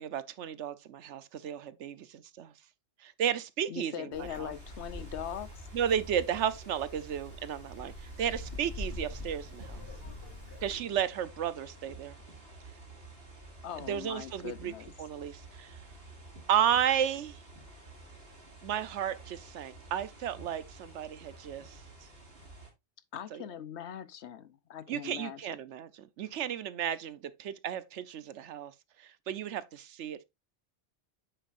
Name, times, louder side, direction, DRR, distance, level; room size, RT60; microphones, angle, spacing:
voice 1, 0.0-2.5 3.0-4.5 5.7-9.8 10.6-12.2 13.8-14.7 15.0-15.8 16.5-17.4 18.6-22.1 23.3-23.4 24.9-28.7 29.0-30.2, right 9 dB, 90° right, 1.0 m, -33 dB
voice 2, 3.7-5.6 13.6-14.9 23.1-25.6, left 9 dB, 75° left, 1.0 m, -41 dB
Wind, 4.1-10.7, left 2 dB, 60° left, 3.8 m, -44 dB
sound 1, 4.5-22.7, right 3 dB, 60° right, 2.7 m, -51 dB
9.1 x 6.8 x 2.5 m
omnidirectional pair, 1.2 m